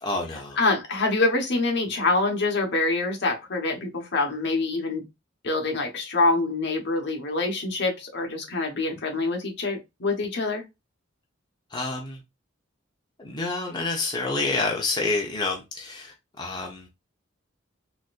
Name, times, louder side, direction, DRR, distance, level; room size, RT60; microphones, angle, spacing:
voice 1, 0.0-0.6 11.7-12.2 13.2-16.9, left 3 dB, 20° left, 0.7 m, -28 dB
voice 2, 0.6-5.0 5.4-10.6, left 3 dB, 60° left, 1.1 m, -25 dB
4.0 x 2.5 x 2.4 m
head